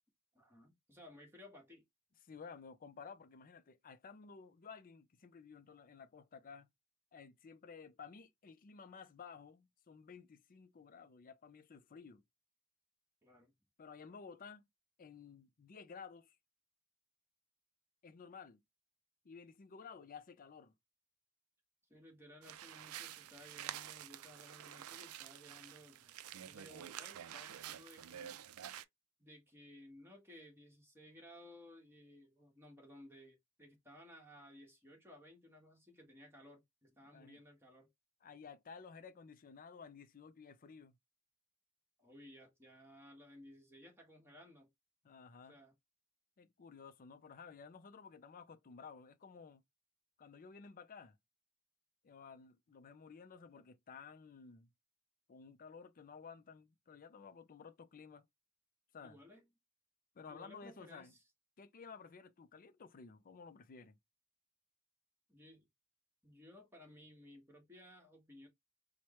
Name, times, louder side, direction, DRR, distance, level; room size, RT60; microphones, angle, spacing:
voice 1, 0.3-1.8 13.2-13.5 21.9-28.4 29.2-37.9 42.0-44.7 45.5-45.7 59.0-59.4 60.3-61.2 65.3-65.7 66.2-68.5, left 1 dB, 10° right, 1.4 m, -58 dB
voice 2, 2.2-6.7 7.1-12.2 13.8-14.6 15.0-16.4 18.0-18.6 19.2-20.7 37.1-37.4 38.2-41.0 45.0-45.6 46.4-49.6 50.2-51.2 52.0-54.7 55.3-58.3 58.9-59.2 60.1-61.1 61.6-64.0, left 5 dB, 40° left, 0.5 m, -54 dB
sound 1, 22.4-28.8, right 11 dB, 80° right, 0.4 m, -49 dB
4.6 x 2.1 x 3.0 m
head